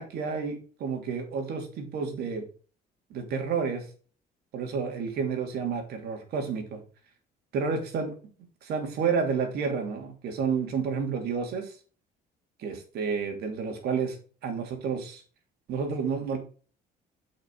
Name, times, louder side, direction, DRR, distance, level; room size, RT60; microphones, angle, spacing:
voice 1, 0.0-2.4 3.1-3.8 4.5-6.8 7.5-8.1 8.6-11.7 12.6-14.2 14.4-15.2 15.7-16.4, right 5 dB, 70° right, 4 dB, 2.9 m, -30 dB
7.7 x 5.8 x 4.7 m, 0.38 s
cardioid pair, 110°, 17 cm